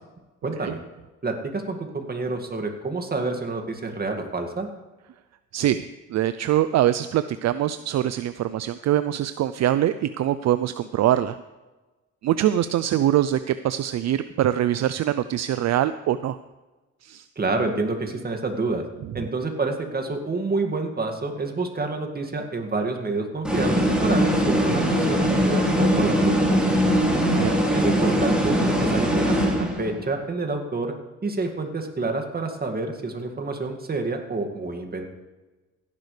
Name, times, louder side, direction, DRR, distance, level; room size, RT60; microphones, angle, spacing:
voice 1, 0.4-0.8 1.2-4.7 17.4-18.8 19.1-26.9 27.7-30.9 31.2-35.0, right 3 dB, 30° right, 4 dB, 2.1 m, -28 dB
voice 2, 5.5-11.4 12.2-16.4 17.0-17.3 27.2-27.6, right 12 dB, 60° right, 13 dB, 0.5 m, -23 dB
sound 1, 23.4-30.1, equal, 5° right, 3.7 m, -21 dB
16.5 x 11.0 x 3.3 m, 1.2 s
cardioid pair, 90°, 30 cm